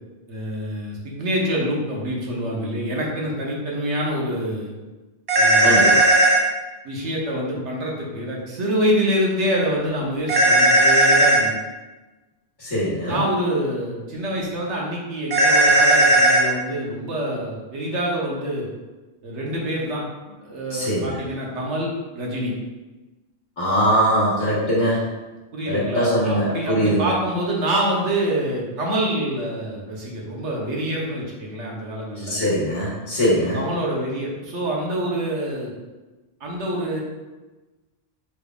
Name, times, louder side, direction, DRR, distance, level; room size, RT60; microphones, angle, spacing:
voice 1, 0.3-4.7 5.4-5.8 6.8-11.5 13.0-18.7 19.2-20.0 20.4-22.5 25.5-32.4 33.5-35.7 36.4-37.0, equal, 85° right, -3 dB, 1.2 m, -26 dB
sound 1, 5.3-6.4 10.3-11.4 15.3-16.5, right 1 dB, 30° right, 0.5 m, -15 dB
voice 2, 5.6-6.1 12.6-13.2 20.7-21.2 23.6-25.0 25.7-27.1 32.2-33.6, equal, 45° left, -7 dB, 1.4 m, -21 dB
5.0 x 3.3 x 2.4 m, 1.2 s
omnidirectional pair, 1.2 m